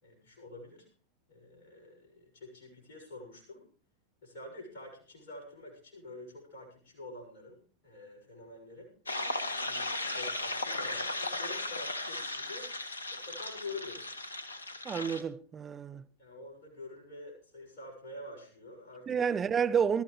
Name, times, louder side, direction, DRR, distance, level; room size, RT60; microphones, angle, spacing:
voice 1, 0.0-0.9 1.3-3.6 4.2-8.9 9.5-12.7 13.1-14.1 16.2-19.2, left 2 dB, 55° left, 6.7 m, -47 dB
sound 1, 9.1-15.2, left 2 dB, 75° left, 1.1 m, -36 dB
voice 2, 14.8-16.1 19.1-20.0, right 7 dB, 20° right, 0.8 m, -30 dB
22.0 x 13.5 x 3.2 m
figure-of-eight pair, 90°, 0 cm